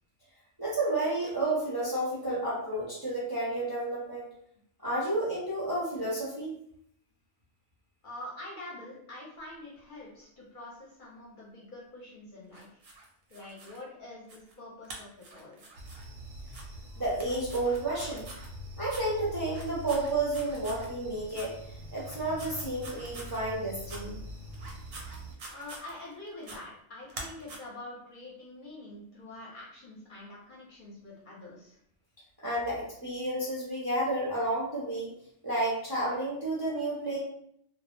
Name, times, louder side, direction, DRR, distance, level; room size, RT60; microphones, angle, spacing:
voice 1, 0.6-4.3 4.8-6.6 17.0-18.3 18.8-21.6 21.9-24.2 32.4-35.1 35.4-37.2, right 2 dB, 25° right, -7 dB, 0.5 m, -31 dB
voice 2, 8.0-12.8 13.3-15.6 25.5-31.8, left 1 dB, 50° left, -5 dB, 0.8 m, -46 dB
sound 1, 12.5-13.8 14.3-14.5 14.8-16.1 16.5-16.6 17.1-18.5 18.9-19.0 19.5-20.9 21.3-21.5 22.0-23.4 23.9-24.0 24.5-26.1 26.4-26.6 27.1-27.6, right 2 dB, 65° right, 0.7 m, -46 dB
sound 2, 15.8-25.3, left 1 dB, 85° right, 1.0 m, -44 dB
2.3 x 2.0 x 3.0 m, 0.69 s
omnidirectional pair, 1.2 m